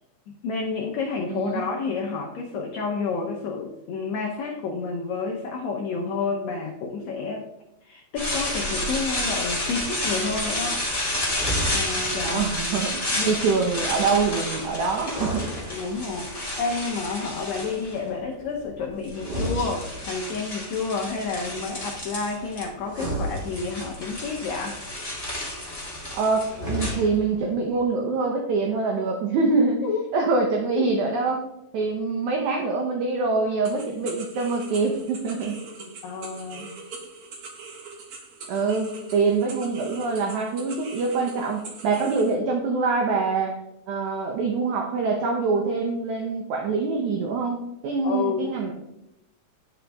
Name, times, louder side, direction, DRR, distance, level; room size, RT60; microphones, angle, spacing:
voice 1, 0.4-7.4 7.8-10.8 11.7-12.5 13.2-13.4 15.7-24.8 29.8-30.0 30.8-30.9 35.8-36.8 48.0-48.6, left 4 dB, 80° left, 1 dB, 1.6 m, -30 dB
voice 2, 1.3-1.7 12.3-15.4 26.1-29.8 30.1-31.4 31.7-35.6 38.5-43.5 43.9-48.7, right 4 dB, 70° right, 2 dB, 1.9 m, -25 dB
sound 1, 8.2-18.1 18.8-22.7 22.9-27.5, left 1 dB, 10° left, 1.3 m, -31 dB
sound 2, 11.3-12.2 14.9-16.3 19.1-20.3 22.8-24.1 26.4-27.4, equal, 20° right, 1.8 m, -32 dB
sound 3, 33.6-42.3, right 4 dB, 55° right, 2.3 m, -42 dB
11.0 x 5.1 x 3.4 m, 0.86 s
omnidirectional pair, 4.3 m